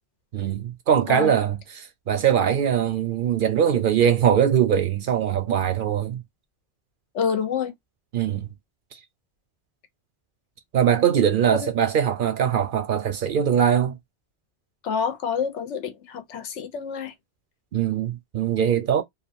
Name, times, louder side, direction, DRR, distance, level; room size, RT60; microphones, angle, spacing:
voice 1, 0.3-6.2 8.1-8.5 10.7-14.0 17.7-19.0, right 9 dB, 60° right, 0.6 m, -22 dB
voice 2, 7.1-7.7 11.5-11.7 14.8-17.1, left 6 dB, 90° left, 1.1 m, -27 dB
2.8 x 2.3 x 2.5 m
omnidirectional pair, 1.2 m